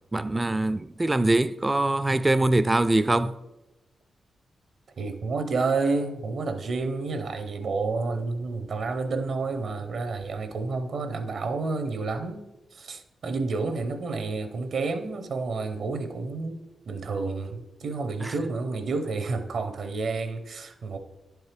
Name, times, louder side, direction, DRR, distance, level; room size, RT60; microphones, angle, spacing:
voice 1, 0.1-3.4 18.2-18.3, right 2 dB, 25° right, 0.3 m, -23 dB
voice 2, 5.0-12.5 12.7-21.0, right 3 dB, 70° right, 0.7 m, -30 dB
10.5 x 4.6 x 3.3 m
supercardioid pair, 50°, 0 cm